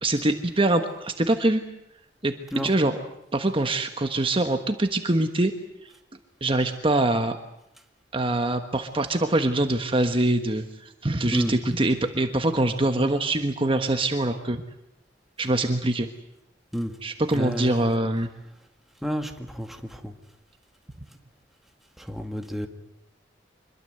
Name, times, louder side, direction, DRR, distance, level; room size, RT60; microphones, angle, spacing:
voice 1, 0.0-1.6 2.2-2.3 2.6-2.9 3.3-5.5 6.4-7.4 8.1-10.6 11.0-14.6 15.4-16.1 17.0-18.3, right 2 dB, 30° right, 6 dB, 1.4 m, -24 dB
voice 2, 17.3-17.9 19.0-20.1 22.0-22.7, equal, ahead, 4 dB, 2.0 m, -30 dB
25.5 x 22.5 x 7.9 m, 0.80 s
head